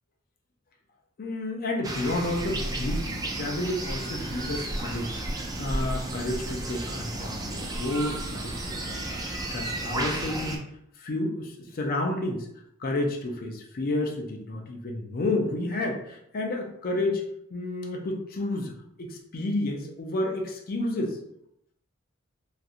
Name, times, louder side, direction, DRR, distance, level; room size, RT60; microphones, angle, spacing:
voice 1, 1.2-5.2 5.6-10.6 10.9-12.5 12.8-18.7 19.0-21.2, left 2 dB, 45° left, 1 dB, 0.5 m, -31 dB
sound 1, 1.8-10.6, right 1 dB, 20° right, 0.4 m, -33 dB
2.9 x 2.4 x 2.5 m, 0.75 s
head